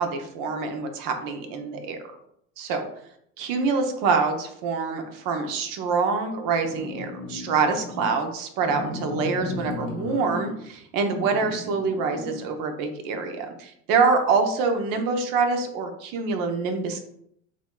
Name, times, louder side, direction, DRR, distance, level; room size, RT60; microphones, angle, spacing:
voice 1, 0.0-2.0 2.6-2.9 3.4-17.0, right 4 dB, 55° right, 5 dB, 0.8 m, -25 dB
sound 1, 6.6-8.1 8.6-10.7 11.1-12.5, left 2 dB, 80° left, 1.3 m, -35 dB
4.0 x 3.0 x 2.3 m, 0.71 s
hypercardioid pair, 80°, 40 cm